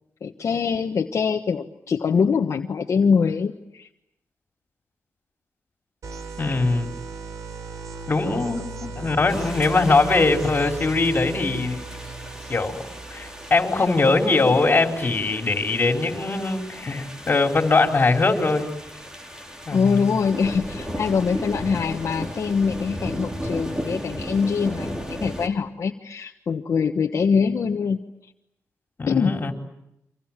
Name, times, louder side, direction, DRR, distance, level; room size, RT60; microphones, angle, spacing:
voice 1, 0.2-3.9 19.7-28.0 29.1-29.4, left 5 dB, 65° left, 3 dB, 1.4 m, -23 dB
sound 1, 6.0-15.7, right 4 dB, 70° right, 4.5 m, -38 dB
voice 2, 6.4-6.9 8.1-11.9 12.5-12.8 13.1-18.7 19.7-20.0 29.0-29.5, left 3 dB, 35° left, 3 dB, 4.6 m, -21 dB
sound 2, 9.3-25.5, equal, 10° right, 3.8 m, -36 dB
30.0 x 26.5 x 7.6 m, 0.83 s
wide cardioid pair, 115°, 6 cm